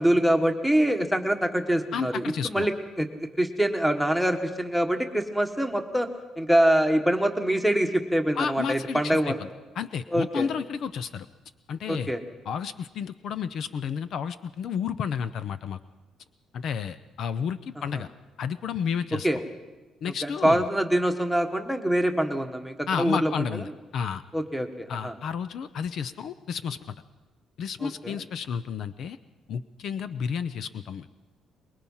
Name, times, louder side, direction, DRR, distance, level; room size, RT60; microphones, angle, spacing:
voice 1, 0.0-2.2 2.5-2.7 3.0-3.1 3.4-6.1 6.4-9.3 10.1-10.5 11.9-12.2 19.2-19.4 20.2-23.3 24.3-25.1 27.8-28.2, right 1 dB, ahead, 6 dB, 1.5 m, -24 dB
voice 2, 1.9-2.7 8.3-9.5 9.7-11.3 11.7-12.1 12.5-15.8 16.5-18.1 18.4-19.3 20.0-20.7 22.9-24.2 24.9-26.9 27.6-29.2 29.5-31.1, left 7 dB, 60° left, 13 dB, 0.6 m, -31 dB
24.0 x 21.5 x 5.6 m, 1.2 s
cardioid pair, 145°, 0 cm